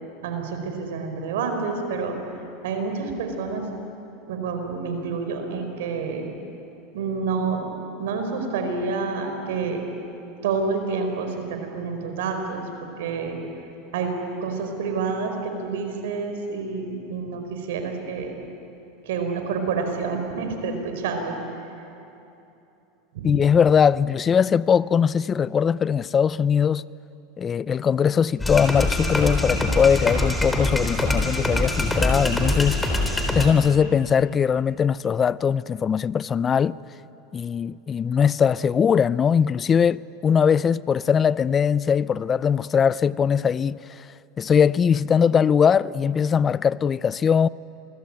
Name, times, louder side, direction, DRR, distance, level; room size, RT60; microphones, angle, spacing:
voice 1, 0.2-2.2 2.6-3.6 4.3-6.3 6.9-9.8 10.4-12.7 13.0-13.4 13.9-14.1 14.4-18.3 19.0-21.4 23.1-23.4, right 4 dB, 80° right, 4.7 m, -28 dB
voice 2, 23.2-26.9 27.4-32.8 33.3-36.8 37.3-44.1 44.4-47.5, left 7 dB, 25° left, 0.5 m, -21 dB
sound 1, 28.4-33.5, left 1 dB, 10° left, 3.8 m, -24 dB
27.5 x 21.0 x 9.0 m
supercardioid pair, 115°, 0 cm